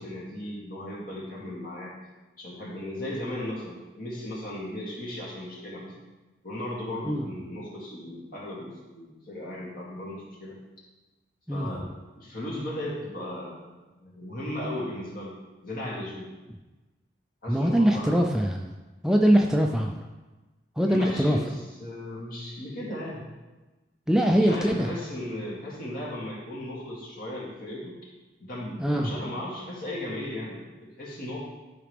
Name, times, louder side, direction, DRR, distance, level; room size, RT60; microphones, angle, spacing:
voice 1, 0.0-1.9 2.4-6.0 6.4-8.7 9.0-10.6 11.5-11.9 12.2-13.7 14.0-16.3 17.4-18.2 20.8-21.5 21.8-23.3 24.4-27.9 28.4-31.4, left 1 dB, 50° left, -5 dB, 2.4 m, -36 dB
voice 2, 11.5-11.9 17.5-18.7 19.0-20.0 20.8-21.4 24.1-24.9 28.8-29.1, equal, 5° right, 1 dB, 0.4 m, -22 dB
12.0 x 4.9 x 3.4 m, 1.2 s
head